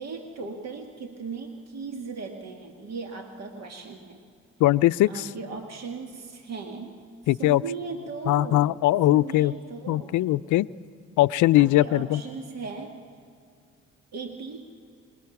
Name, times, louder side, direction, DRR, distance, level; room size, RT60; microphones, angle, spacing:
voice 1, 0.0-4.2 5.1-7.0 7.3-8.7 9.1-10.2 11.6-13.0 14.1-14.6, right 4 dB, 60° right, 3 dB, 1.9 m, -37 dB
voice 2, 4.6-5.3 7.3-7.6 8.3-9.5 9.9-10.7 11.2-12.2, left 15 dB, 80° left, 15 dB, 0.5 m, -20 dB
26.5 x 22.0 x 5.9 m, 2.4 s
cardioid pair, 90°, 30 cm